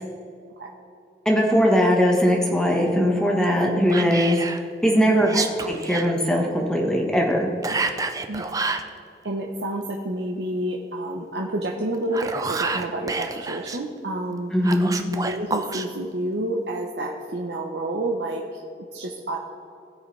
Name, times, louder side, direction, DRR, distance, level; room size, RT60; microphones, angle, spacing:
voice 1, 1.2-4.4 4.8-7.5 14.5-14.9, equal, 5° left, 0 dB, 1.3 m, -20 dB
Whispering, 3.9-4.6 5.2-6.1 7.6-8.9 11.9-13.8 14.6-15.9, right 4 dB, 20° right, 0.5 m, -28 dB
voice 2, 5.0-5.5 7.7-7.8 8.3-8.6 9.2-14.5 15.1-18.6 18.9-19.4, right 1 dB, 80° right, -1 dB, 0.9 m, -29 dB
18.5 x 6.4 x 3.3 m, 2.5 s
head